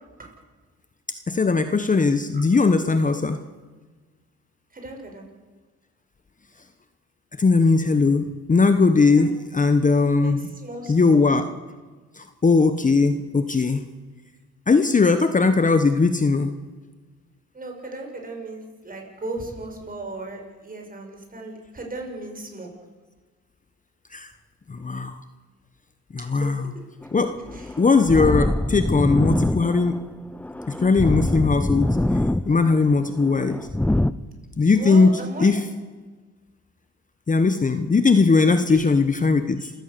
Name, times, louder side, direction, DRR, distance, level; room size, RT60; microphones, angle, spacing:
voice 1, 1.3-3.4 7.4-10.5 10.9-11.5 12.2-13.8 14.7-16.6 24.1-24.3 24.7-25.2 26.1-26.7 27.1-27.4 27.8-30.0 30.7-32.0 32.4-33.6 34.6-35.6 37.3-39.7, left 4 dB, 25° left, 9 dB, 1.2 m, -19 dB
voice 2, 4.7-5.3 9.2-9.3 10.2-11.3 17.5-22.7 26.2-26.5 27.5-27.7 34.7-35.5 38.7-38.8, right 2 dB, 30° right, 2 dB, 6.1 m, -36 dB
sound 1, 27.0-34.1, left 1 dB, 5° left, 0.6 m, -25 dB
27.5 x 16.0 x 6.9 m, 1.3 s
cardioid pair, 90°, 30 cm